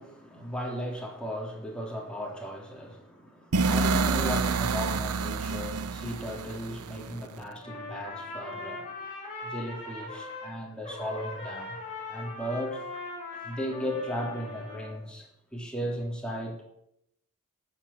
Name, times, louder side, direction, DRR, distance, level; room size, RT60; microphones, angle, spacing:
voice 1, 0.0-8.9 9.4-11.8 12.1-12.8 13.4-16.6, equal, 5° left, -1 dB, 3.2 m, -36 dB
sound 1, 3.5-7.4, right 4 dB, 85° right, 0.8 m, -28 dB
Trumpet, 7.6-10.5 10.8-15.0, left 3 dB, 30° left, 7.1 m, -40 dB
13.5 x 7.4 x 8.6 m, 0.79 s
head